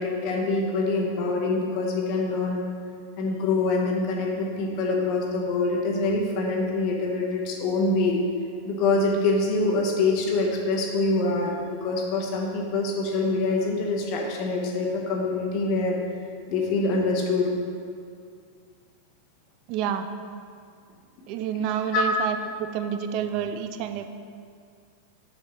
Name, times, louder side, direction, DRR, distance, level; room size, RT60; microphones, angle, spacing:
voice 1, 0.0-2.6 3.2-8.2 8.6-16.0 16.5-17.5 21.9-22.0, left 3 dB, 40° left, 0 dB, 1.0 m, -25 dB
voice 2, 19.7-20.1 21.3-24.1, right 8 dB, 45° right, 9 dB, 0.4 m, -29 dB
6.5 x 4.4 x 4.1 m, 2.2 s
figure-of-eight pair, 90°, 0 cm